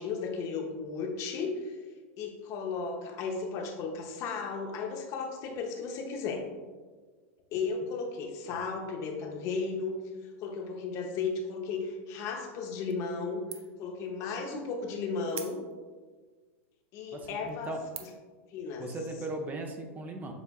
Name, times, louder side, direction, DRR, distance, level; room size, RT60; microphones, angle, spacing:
voice 1, 0.0-1.8 2.2-6.4 7.5-9.9 10.4-13.4 13.8-15.6 16.9-17.7 18.5-18.9, left 4 dB, 45° left, 3 dB, 0.6 m, -35 dB
sound 1, 12.9-13.3 13.5-13.9 14.3-14.4 15.3-16.0 16.6-16.7 17.3-17.5 17.9-18.3, right 9 dB, 75° right, 0.4 m, -43 dB
voice 2, 17.1-17.8 18.8-20.3, right 2 dB, 25° right, 3 dB, 0.5 m, -38 dB
6.9 x 2.4 x 2.3 m, 1.4 s
hypercardioid pair, 110°, 7 cm